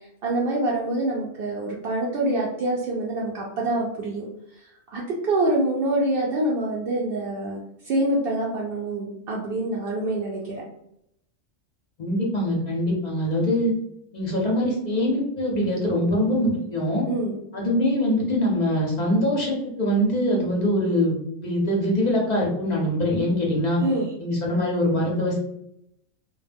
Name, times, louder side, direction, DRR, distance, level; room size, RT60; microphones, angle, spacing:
voice 1, 0.2-4.2 4.6-10.4 17.1-17.4 23.8-24.1, right 1 dB, 65° right, -3 dB, 0.5 m, -26 dB
voice 2, 12.0-13.7 14.1-17.1 17.5-21.1 21.4-23.8 24.2-25.4, left 1 dB, 45° left, -2 dB, 0.5 m, -23 dB
2.2 x 2.2 x 3.3 m, 0.77 s
omnidirectional pair, 1.4 m